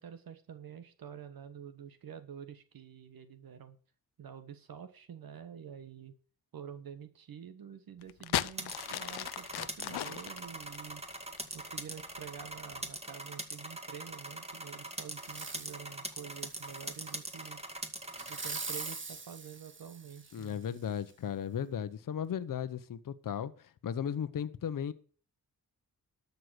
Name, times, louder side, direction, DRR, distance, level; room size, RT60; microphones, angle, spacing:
voice 1, 0.0-3.8 4.2-6.1 6.5-11.0 11.5-17.6 18.3-20.6, right 8 dB, 65° right, 1.3 m, -48 dB
sound 1, 8.0-11.7 12.5-12.9, left 13 dB, 85° left, 0.7 m, -36 dB
sound 2, 8.5-18.9, right 1 dB, 15° right, 2.0 m, -42 dB
Fireworks, 15.2-15.8 16.3-17.4 18.1-20.5 21.1-21.2, right 4 dB, 30° right, 1.6 m, -43 dB
voice 2, 20.3-24.9, left 8 dB, 55° left, 1.0 m, -36 dB
12.5 x 6.7 x 6.5 m
cardioid pair, 90°, 38 cm